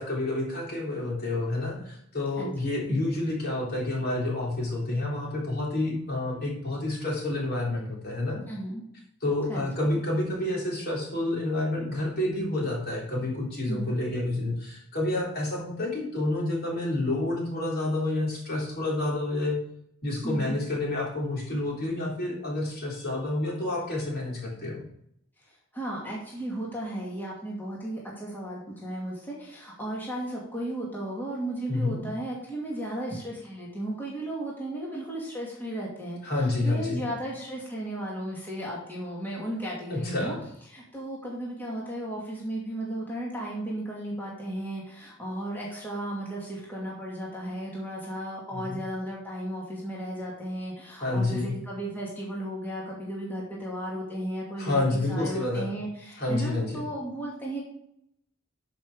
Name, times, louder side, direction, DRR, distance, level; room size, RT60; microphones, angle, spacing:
voice 1, 0.0-8.4 9.2-19.6 20.0-24.8 31.7-32.0 36.2-37.0 39.9-40.4 48.5-48.8 51.0-51.5 54.6-55.7 56.2-56.8, left 2 dB, 50° left, -3 dB, 3.5 m, -29 dB
voice 2, 8.5-8.8 9.5-9.7 13.7-13.9 20.2-20.5 25.5-40.3 40.7-57.6, right 1 dB, 10° left, -5 dB, 2.4 m, -35 dB
12.5 x 5.8 x 4.9 m, 0.73 s
head